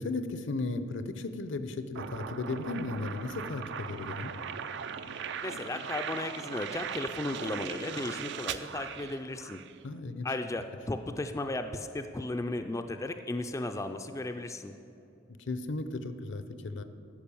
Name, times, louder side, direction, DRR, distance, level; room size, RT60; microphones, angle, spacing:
voice 1, 0.0-4.3 9.8-10.3 15.5-16.8, left 3 dB, 65° left, 11 dB, 0.6 m, -35 dB
sound 1, 1.9-9.7, right 7 dB, 65° right, 0.4 m, -39 dB
voice 2, 5.4-9.6 10.2-14.7, left 2 dB, 15° left, 6 dB, 0.3 m, -35 dB
13.0 x 5.4 x 7.0 m, 2.8 s
head